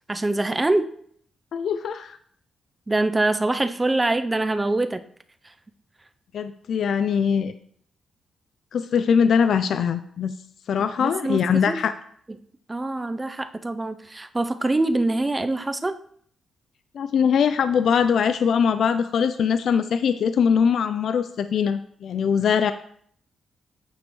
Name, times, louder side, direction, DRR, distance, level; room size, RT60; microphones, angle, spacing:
voice 1, 0.1-0.9 2.9-5.0 5.4-5.5 11.0-11.8 12.7-16.0, right 2 dB, 20° right, 11 dB, 0.5 m, -24 dB
voice 2, 1.5-2.2 6.3-7.5 8.7-10.3 10.7-11.9 16.9-22.7, left 7 dB, 70° left, 11 dB, 0.3 m, -22 dB
8.9 x 5.2 x 3.1 m, 0.62 s
cardioid pair, 95°, 0 cm